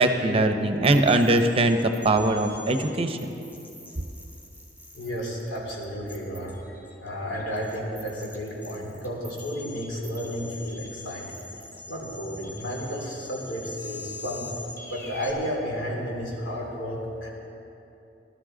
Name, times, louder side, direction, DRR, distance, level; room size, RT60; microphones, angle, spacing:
voice 1, 0.0-3.2, right 2 dB, 30° right, 7 dB, 0.7 m, -21 dB
sound 1, 0.8-15.3, left 2 dB, 15° left, 3.0 m, -44 dB
voice 2, 4.9-6.5 7.0-11.4 11.9-14.5 14.9-17.3, equal, 80° left, -3 dB, 3.3 m, -32 dB
19.5 x 13.0 x 3.8 m, 2.8 s
head